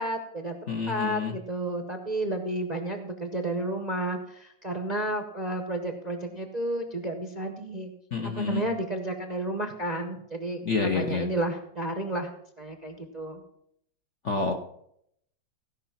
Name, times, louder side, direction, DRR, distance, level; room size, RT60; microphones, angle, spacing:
voice 1, 0.0-7.9 8.2-12.3 12.6-13.4, right 1 dB, 30° right, 5 dB, 0.8 m, -32 dB
voice 2, 0.7-1.4 8.1-8.6 10.6-11.3 14.2-14.5, left 4 dB, 50° left, 2 dB, 1.0 m, -28 dB
16.0 x 5.5 x 5.8 m, 0.73 s
omnidirectional pair, 2.1 m